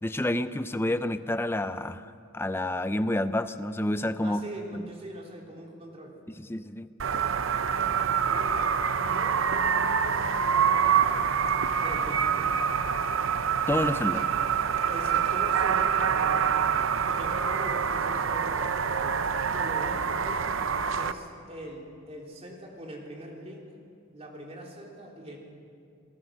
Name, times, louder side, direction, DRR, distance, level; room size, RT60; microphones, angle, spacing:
voice 1, 0.0-4.4 4.7-4.8 6.3-6.9 13.7-14.2, left 1 dB, 10° left, 11 dB, 0.5 m, -29 dB
voice 2, 4.2-6.2 8.3-8.7 9.0-11.4 11.8-12.5 14.9-16.8 17.1-19.2 19.5-20.6 20.9-23.7 24.1-25.4, equal, 30° right, -1 dB, 3.6 m, -42 dB
sound 1, 7.0-21.1, right 7 dB, 70° right, 0.7 m, -26 dB
29.0 x 18.5 x 6.4 m, 2.5 s
head